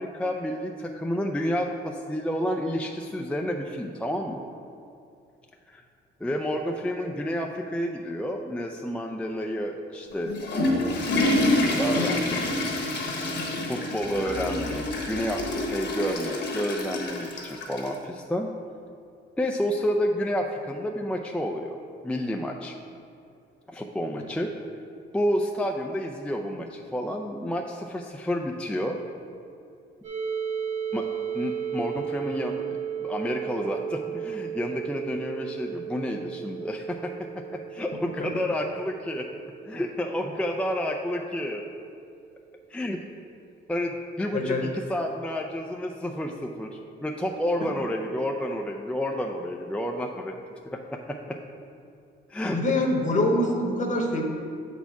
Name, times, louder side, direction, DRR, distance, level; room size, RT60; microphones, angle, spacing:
voice 1, 0.0-4.4 5.7-5.8 6.2-10.4 11.8-12.9 13.7-18.5 19.4-21.8 22.0-22.8 23.7-24.5 25.1-29.0 30.9-31.1 31.3-39.3 39.7-41.6 42.7-43.0 43.7-50.3 50.6-51.4 52.3-52.6, equal, 5° left, 2 dB, 0.4 m, -30 dB
Water / Toilet flush, 10.1-18.0, left 1 dB, 60° left, 1.3 m, -27 dB
sound 1, 30.0-41.7, right 8 dB, 75° right, 1.5 m, -35 dB
voice 2, 44.3-44.7 52.5-54.2, left 1 dB, 40° left, 2 dB, 1.1 m, -24 dB
6.9 x 4.3 x 4.7 m, 2.5 s
cardioid pair, 90°, 20 cm